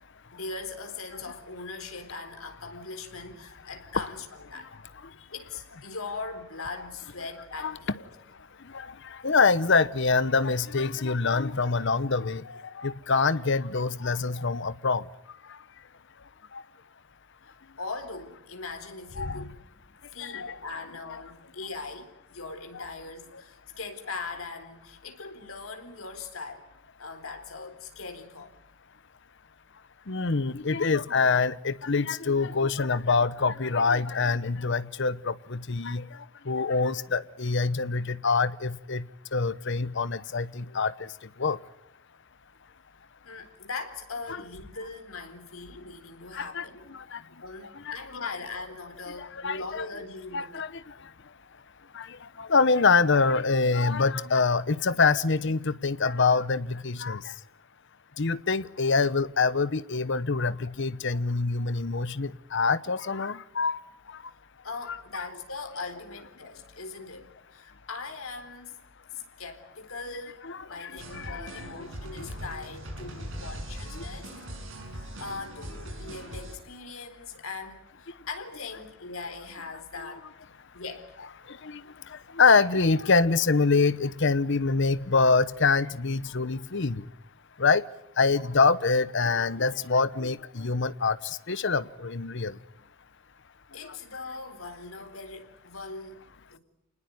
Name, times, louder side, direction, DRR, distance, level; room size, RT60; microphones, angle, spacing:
voice 1, 0.3-4.8 5.1-8.1 17.4-26.6 27.0-28.5 43.2-50.5 64.6-68.8 69.1-74.3 74.9-81.1 93.7-96.6, left 4 dB, 85° left, 3.9 m, -40 dB
voice 2, 9.2-12.4 12.8-15.0 19.2-19.5 20.3-20.5 30.1-36.0 36.5-39.0 39.3-40.9 41.4-41.6 46.4-46.6 47.1-47.2 48.2-48.3 49.4-49.8 50.3-50.7 52.0-52.1 52.4-57.2 58.2-63.8 64.9-65.2 70.4-70.6 71.2-71.4 71.8-71.9 72.2-72.3 81.6-81.8 82.4-87.0 87.6-87.8 88.2-91.2 91.5-92.5, left 4 dB, 60° left, 0.9 m, -25 dB
sound 1, 71.0-76.6, right 1 dB, 65° right, 7.2 m, -40 dB
28.0 x 20.0 x 9.3 m
head